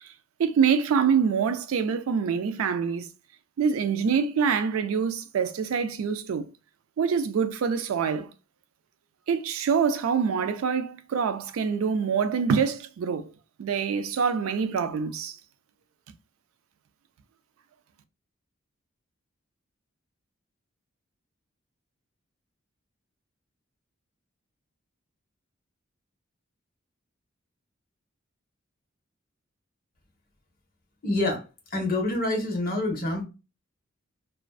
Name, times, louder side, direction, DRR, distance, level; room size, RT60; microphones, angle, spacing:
voice 1, 0.4-3.1 3.6-6.5 7.0-8.3 9.3-13.3 13.6-15.4, right 6 dB, 90° right, 0.3 m, -25 dB
voice 2, 31.0-31.4 31.7-33.2, left 2 dB, 45° left, 0.7 m, -26 dB
2.4 x 2.2 x 2.3 m
head